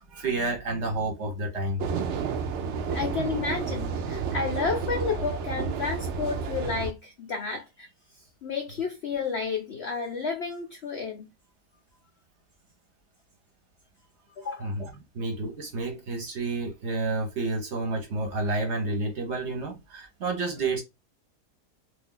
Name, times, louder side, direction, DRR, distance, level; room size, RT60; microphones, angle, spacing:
voice 1, 0.0-1.8 14.6-14.9 15.1-20.8, right 2 dB, 50° right, 1.0 m, -30 dB
sound 1, 1.8-6.9, right 5 dB, 70° right, 0.6 m, -31 dB
voice 2, 2.9-7.9 8.4-11.3 14.4-14.7, left 5 dB, 70° left, 0.6 m, -31 dB
2.6 x 2.5 x 3.7 m
omnidirectional pair, 1.7 m